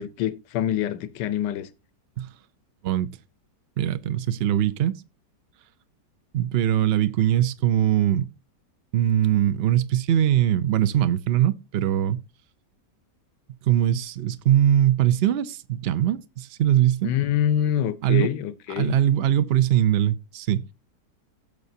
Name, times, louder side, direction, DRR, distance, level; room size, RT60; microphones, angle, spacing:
voice 1, 0.0-1.7 17.0-18.9, left 10 dB, 90° left, 1.4 m, -25 dB
voice 2, 3.8-5.0 6.3-8.3 8.9-12.2 13.6-17.1 18.0-18.3 18.8-20.7, right 11 dB, 75° right, 0.5 m, -21 dB
17.0 x 6.6 x 2.7 m
omnidirectional pair, 1.8 m